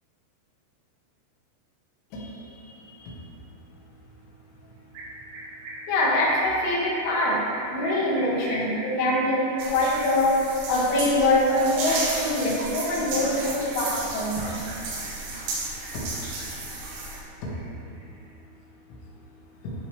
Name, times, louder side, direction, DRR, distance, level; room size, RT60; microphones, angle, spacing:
voice 1, 2.1-2.6 2.9-3.1 5.9-14.7 15.9-16.0, left 1 dB, 75° left, -4 dB, 4.1 m, -24 dB
sound 1, 4.9-14.3 14.7-15.4 15.7-16.7 16.9-18.3, right 1 dB, 60° right, 3.8 m, -41 dB
sound 2, 9.6-17.2, right 2 dB, 80° right, 4.2 m, -33 dB
12.5 x 9.4 x 3.4 m, 2.8 s
omnidirectional pair, 5.7 m